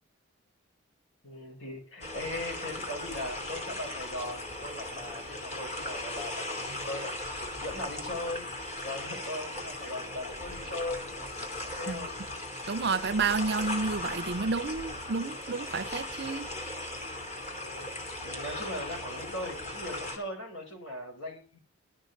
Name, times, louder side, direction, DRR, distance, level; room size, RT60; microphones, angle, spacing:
voice 1, 1.2-7.2 7.6-8.5 8.8-11.1 11.6-12.2 17.6-21.6, left 1 dB, 65° left, 4.7 m, -39 dB
sound 1, 2.0-20.2, left 1 dB, 35° left, 2.5 m, -38 dB
voice 2, 12.7-16.5, right 4 dB, 50° right, 0.6 m, -30 dB
11.5 x 6.4 x 7.8 m
head